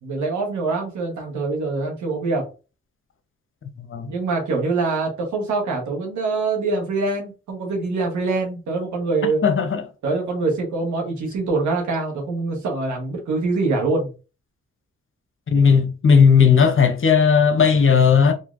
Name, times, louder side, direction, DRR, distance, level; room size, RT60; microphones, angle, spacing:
voice 1, 0.0-2.5 4.0-9.4 10.0-14.1, right 3 dB, 85° right, 1.2 m, -24 dB
voice 2, 9.4-9.8 15.5-18.3, left 6 dB, 45° left, 0.8 m, -15 dB
3.1 x 2.6 x 2.5 m
supercardioid pair, 45°, 29 cm